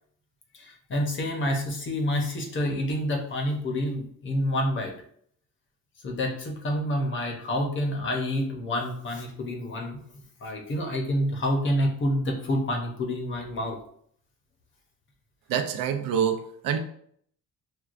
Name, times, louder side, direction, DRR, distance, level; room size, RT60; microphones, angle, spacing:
voice 1, 0.5-4.9 6.0-10.0 10.4-13.8, left 1 dB, 35° left, 2 dB, 0.7 m, -28 dB
voice 2, 15.5-16.8, right 8 dB, 85° right, 6 dB, 0.6 m, -26 dB
6.1 x 2.3 x 2.5 m, 0.64 s
cardioid pair, 175°, 33 cm